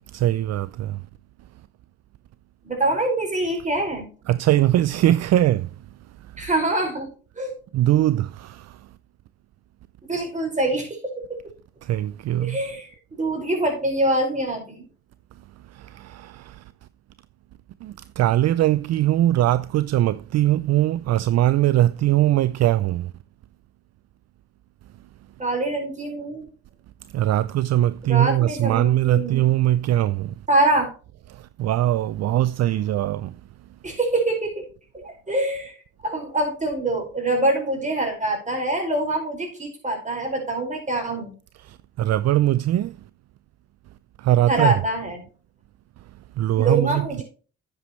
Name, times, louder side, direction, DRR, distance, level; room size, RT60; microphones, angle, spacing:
voice 1, 0.1-1.0 4.3-5.8 6.3-6.5 7.7-8.9 11.8-12.6 15.7-16.6 17.8-23.1 27.1-30.3 31.3-33.4 41.6-43.0 44.2-44.8 46.4-47.2, right 13 dB, 60° right, 0.4 m, -21 dB
voice 2, 2.6-4.1 6.4-7.5 10.0-11.0 12.4-14.8 25.4-26.5 28.0-29.5 30.5-30.9 33.8-34.6 34.9-35.8 36.0-41.3 44.5-45.2 46.6-47.2, right 2 dB, 25° right, 5.1 m, -24 dB
10.0 x 8.4 x 3.1 m
cardioid pair, 90°, 30 cm